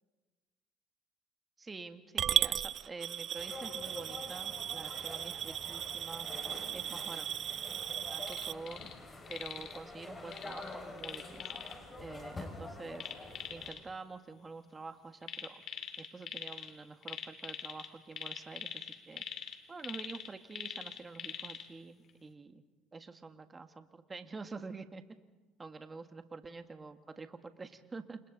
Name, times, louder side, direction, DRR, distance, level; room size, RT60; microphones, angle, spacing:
voice 1, 1.6-6.3 6.7-7.3 8.1-8.9 9.3-11.6 12.0-13.1 13.5-15.6 16.0-19.2 19.7-22.6 22.9-25.0 25.6-28.2, right 4 dB, 25° right, 8 dB, 1.7 m, -47 dB
Coin (dropping) / Glass, 2.2-8.5, right 10 dB, 55° right, 0.6 m, -36 dB
sound 1, 3.4-13.7, left 2 dB, 25° left, 5.7 m, -47 dB
sound 2, 8.2-9.0 9.3-9.8 10.3-11.8 13.0-13.8 15.2-16.7 17.0-21.7 22.1-22.2, left 8 dB, 55° left, 2.8 m, -43 dB
30.0 x 28.0 x 4.0 m, 1.2 s
supercardioid pair, 85°, 0 cm